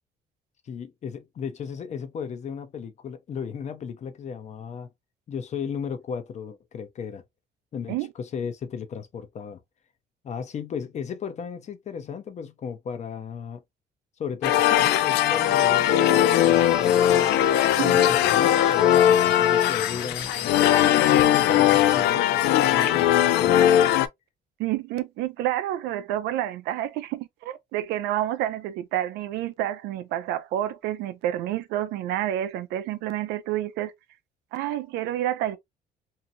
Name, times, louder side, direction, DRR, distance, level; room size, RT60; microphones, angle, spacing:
voice 1, 0.7-4.9 5.3-7.2 7.7-9.6 10.2-13.6 14.2-17.4 17.8-20.3 21.1-23.6, left 6 dB, 45° left, 0.7 m, -35 dB
sound 1, 14.4-24.1, left 11 dB, 80° left, 0.4 m, -19 dB
sound 2, 15.2-22.0, right 1 dB, 5° right, 0.7 m, -43 dB
voice 2, 24.6-33.9 34.5-35.6, right 12 dB, 90° right, 0.5 m, -29 dB
2.8 x 2.5 x 2.6 m
cardioid pair, 110°, 17 cm